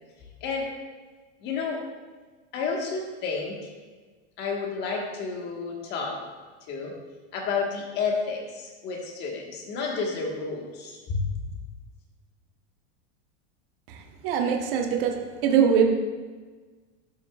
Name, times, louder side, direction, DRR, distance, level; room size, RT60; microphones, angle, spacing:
voice 1, 1.4-1.8 2.5-3.7 4.4-6.2 6.7-6.9 7.3-11.2, left 4 dB, 30° left, -1 dB, 1.4 m, -30 dB
voice 2, 13.9-15.8, right 7 dB, 50° right, 3 dB, 1.1 m, -23 dB
12.0 x 6.3 x 2.4 m, 1.4 s
supercardioid pair, 165°, 35 cm